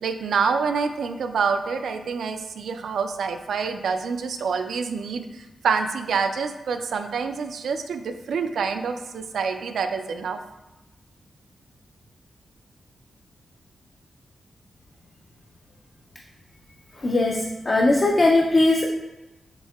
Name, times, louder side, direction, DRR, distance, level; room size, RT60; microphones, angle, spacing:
voice 1, 0.0-10.4, right 5 dB, 90° right, 7 dB, 0.3 m, -27 dB
voice 2, 17.0-18.9, left 2 dB, 30° left, 0 dB, 0.4 m, -19 dB
7.7 x 2.7 x 2.3 m, 1.0 s
wide cardioid pair, 145°, 0 cm